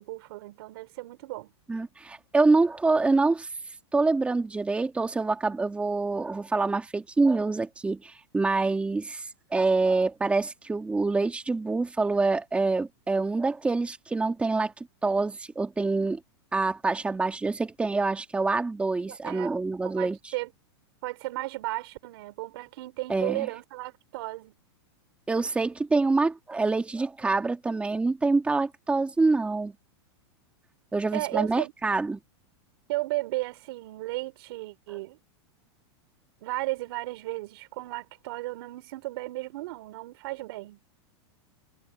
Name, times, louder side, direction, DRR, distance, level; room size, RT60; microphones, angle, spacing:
voice 1, 0.0-1.5 19.1-19.5 20.0-20.5 21.0-24.5 31.1-31.7 32.9-35.2 36.4-40.8, right 20 dB, 60° right, 3.8 m, -34 dB
voice 2, 1.7-3.5 3.9-16.2 16.5-20.3 23.1-23.5 25.3-29.7 30.9-32.2, right 3 dB, 10° right, 2.4 m, -26 dB
supercardioid pair, 145°, 14 cm